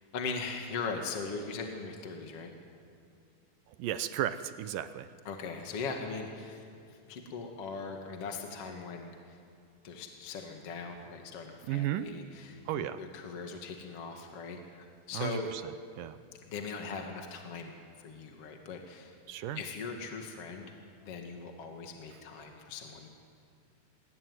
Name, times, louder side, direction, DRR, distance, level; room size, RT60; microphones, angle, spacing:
voice 1, 0.1-2.5 5.3-6.6 6.9-9.4 9.8-12.6 13.0-15.5 16.4-19.1 19.5-20.7 21.0-23.1, left 4 dB, 45° left, 3 dB, 2.6 m, -40 dB
voice 2, 3.7-5.1 11.7-12.1 12.7-13.0 15.1-15.6 16.0-16.2 19.3-19.6, right 11 dB, 75° right, 12 dB, 2.3 m, -34 dB
25.5 x 21.5 x 9.5 m, 2.5 s
omnidirectional pair, 4.1 m